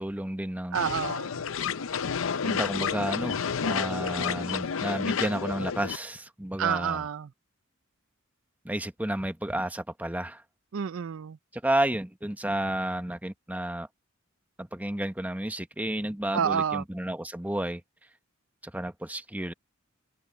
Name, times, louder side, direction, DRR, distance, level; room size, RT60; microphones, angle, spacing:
voice 1, 0.0-0.9 2.4-7.1 8.6-10.4 11.5-13.9 14.6-17.8 18.6-19.5, right 1 dB, 10° right, 1.0 m, -31 dB
sound 1, 0.7-6.0, left 6 dB, 85° left, 0.6 m, -30 dB
voice 2, 0.7-1.4 6.6-7.3 10.7-11.4 16.3-16.8, right 7 dB, 75° right, 0.4 m, -28 dB
open air
head